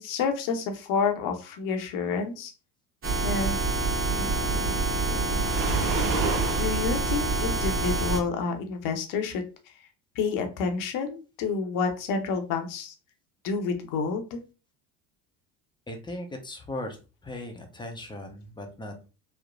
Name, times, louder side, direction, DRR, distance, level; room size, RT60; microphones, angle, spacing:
voice 1, 0.0-2.5 3.2-3.6 4.1-5.5 6.6-9.4 10.2-12.9 13.4-14.4, left 5 dB, 55° left, 5 dB, 0.7 m, -29 dB
sound 1, 3.0-8.2, right 3 dB, 30° right, 1.4 m, -27 dB
Waves surf, 5.3-6.8, right 4 dB, 55° right, 0.7 m, -29 dB
voice 2, 15.9-17.0 17.2-19.1, left 1 dB, 10° left, 4 dB, 0.6 m, -38 dB
3.0 x 2.0 x 2.4 m, 0.32 s
hypercardioid pair, 80°, 39 cm